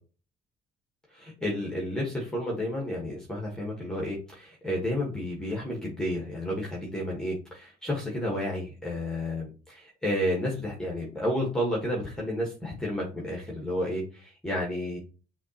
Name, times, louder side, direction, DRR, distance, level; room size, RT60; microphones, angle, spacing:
voice 1, 1.1-15.0, left 1 dB, 5° left, -2 dB, 1.3 m, -31 dB
6.2 x 2.9 x 2.8 m, 0.35 s
cardioid pair, 110°, 17 cm